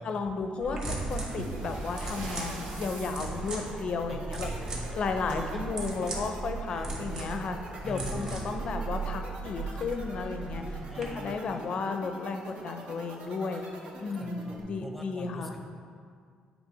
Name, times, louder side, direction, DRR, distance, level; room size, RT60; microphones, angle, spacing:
voice 1, 0.0-4.5 5.0-7.6 7.8-13.6 14.0-15.5, left 4 dB, 45° left, 6 dB, 0.6 m, -34 dB
sound 1, 0.6-11.0, right 3 dB, 35° right, 1.5 m, -37 dB
sound 2, 0.9-14.6, right 2 dB, 60° right, 1.0 m, -45 dB
sound 3, 1.1-6.5 7.7-7.9 8.2-8.3 9.0-9.1 9.7-10.0, right 2 dB, 80° right, 1.8 m, -45 dB
voice 2, 4.1-5.0 5.3-5.6 6.7-6.9 7.8-8.3 10.9-11.4 14.2-15.6, right 1 dB, 5° left, 2 dB, 0.7 m, -42 dB
9.1 x 3.3 x 5.4 m, 2.2 s
cardioid pair, 140°, 2 cm